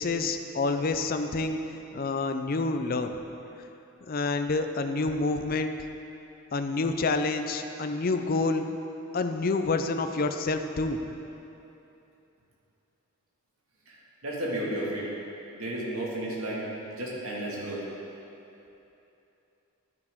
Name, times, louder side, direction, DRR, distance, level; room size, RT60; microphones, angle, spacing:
voice 1, 0.0-3.1 4.1-5.7 6.5-8.6 9.1-11.0, left 3 dB, 45° left, 7 dB, 0.5 m, -28 dB
voice 2, 14.2-15.1 15.5-16.7 16.9-17.9, right 1 dB, 80° right, -5 dB, 2.1 m, -32 dB
11.5 x 9.5 x 3.7 m, 2.9 s
head